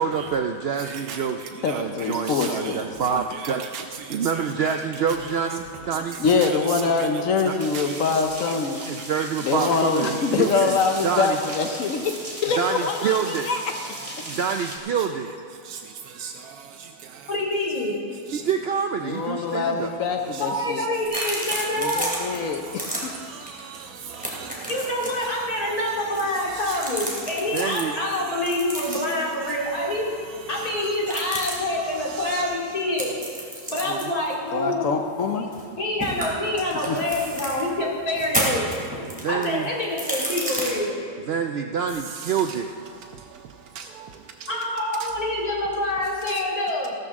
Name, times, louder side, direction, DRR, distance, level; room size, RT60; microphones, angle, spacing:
voice 1, 0.0-1.4 1.7-3.6 4.1-6.2 7.4-7.6 8.8-10.8 11.0-11.4 12.6-13.5 14.3-15.3 18.3-19.9 27.5-27.9 33.9-34.1 39.2-39.7 41.2-42.7, right 6 dB, 65° right, 5 dB, 0.6 m, -26 dB
voice 2, 0.8-1.3 1.6-2.8 3.3-5.3 5.9-6.0 6.3-7.2 7.7-8.2 8.5-8.6 9.2-9.3 9.6-9.7 10.2-10.3 10.5-11.1 15.0-15.1 15.7-15.8 16.2-16.3 18.3-18.4 20.3-20.4 20.8-20.9 23.0-24.6 25.2-25.3 25.8-26.0 26.4-27.0 27.9-28.5 28.9-29.1 30.5-31.4 31.8-32.5 42.1-42.4 43.8-44.1, right 7 dB, 90° right, 4 dB, 1.1 m, -38 dB
voice 3, 1.6-2.8 6.2-8.8 9.5-13.7 14.0-14.1 19.0-20.8 21.8-23.1 34.5-35.5 36.9-37.0, left 4 dB, 70° left, 4 dB, 1.1 m, -24 dB
sound 1, 7.6-14.8, right 1 dB, 25° right, 1.6 m, -38 dB
voice 4, 17.3-18.0 20.4-22.0 24.7-30.1 30.5-33.1 33.7-34.9 35.8-38.7 39.3-41.0 44.5-46.9, left 1 dB, 85° left, -4 dB, 3.0 m, -26 dB
sound 2, 21.0-22.4 22.7-23.0 23.5-23.6 23.9-25.2 26.0-27.8 28.4-29.2 31.0-31.5 33.0-35.7 36.0-37.6 38.1-40.7, equal, 5° right, 2.8 m, -31 dB
15.5 x 13.0 x 3.6 m, 2.3 s
omnidirectional pair, 1.5 m